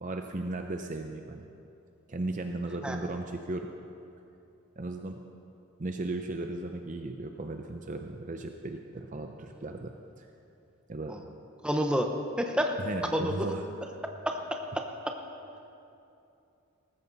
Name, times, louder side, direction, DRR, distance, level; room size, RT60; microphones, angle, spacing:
voice 1, 0.0-1.5 2.1-3.7 4.8-5.2 5.8-10.3 10.9-11.2 12.8-13.6, right 2 dB, 35° right, 4 dB, 0.6 m, -36 dB
voice 2, 11.6-12.1 12.4-12.8 13.1-13.5 14.3-14.8, equal, 5° right, 3 dB, 0.8 m, -29 dB
19.0 x 14.5 x 4.1 m, 2.7 s
head